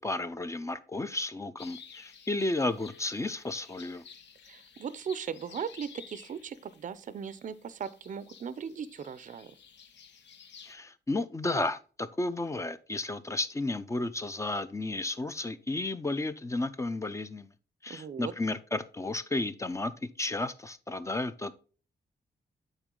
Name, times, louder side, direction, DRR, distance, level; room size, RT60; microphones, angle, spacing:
voice 1, 0.0-4.0 10.6-17.5 17.8-21.5, left 2 dB, 15° left, 0.5 m, -33 dB
sound 1, 1.6-10.7, left 7 dB, 85° left, 0.9 m, -53 dB
voice 2, 4.5-9.5 17.9-18.3, right 7 dB, 45° right, 0.5 m, -38 dB
9.0 x 4.2 x 3.7 m
wide cardioid pair, 145°, 18 cm